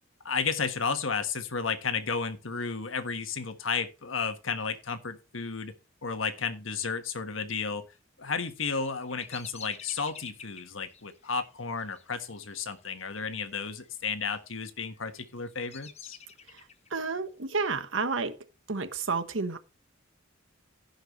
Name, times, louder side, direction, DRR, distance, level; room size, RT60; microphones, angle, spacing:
voice 1, 0.2-5.7 6.0-7.9 8.2-16.2, left 5 dB, 75° left, 1.4 m, -33 dB
Bird vocalization bird call bird song, 8.5-13.5 13.7-14.3 14.9-16.9, left 6 dB, 35° left, 1.0 m, -49 dB
voice 2, 16.9-18.4 18.7-19.6, right 4 dB, 70° right, 1.2 m, -30 dB
16.5 x 5.7 x 3.2 m
head